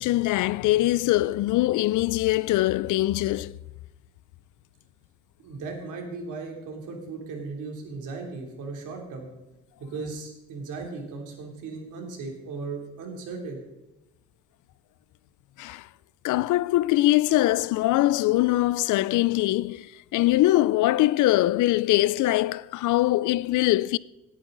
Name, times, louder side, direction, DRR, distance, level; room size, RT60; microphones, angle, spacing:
voice 1, 0.0-3.6 15.6-15.9 16.2-24.0, left 16 dB, 80° left, 0.5 m, -22 dB
voice 2, 5.4-9.3 9.9-13.6, right 4 dB, 85° right, 3.1 m, -37 dB
17.5 x 10.0 x 3.9 m
cardioid pair, 90°, 30 cm